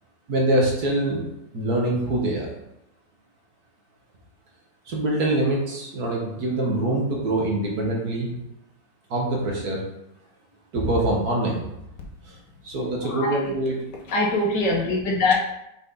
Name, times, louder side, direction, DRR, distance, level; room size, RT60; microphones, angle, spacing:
voice 1, 0.3-1.2 1.5-2.5 4.9-8.3 9.1-9.8 10.7-11.6 12.3-12.4 12.6-13.8, right 1 dB, 55° right, -1 dB, 1.9 m, -24 dB
voice 2, 13.0-13.5 14.1-15.3, left 2 dB, 65° left, -1 dB, 1.8 m, -23 dB
6.1 x 5.2 x 4.0 m, 0.84 s
omnidirectional pair, 2.0 m